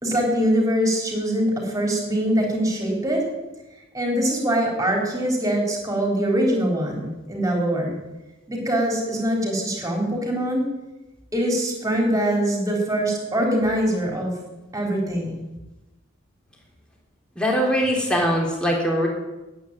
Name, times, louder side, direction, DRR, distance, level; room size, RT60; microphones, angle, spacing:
voice 1, 0.0-3.2 3.9-7.9 8.5-10.6 11.3-14.3 14.7-15.3, right 1 dB, 15° right, 0 dB, 3.8 m, -23 dB
voice 2, 17.3-19.1, equal, 5° left, -1 dB, 3.3 m, -21 dB
10.0 x 8.9 x 9.7 m, 1.1 s
head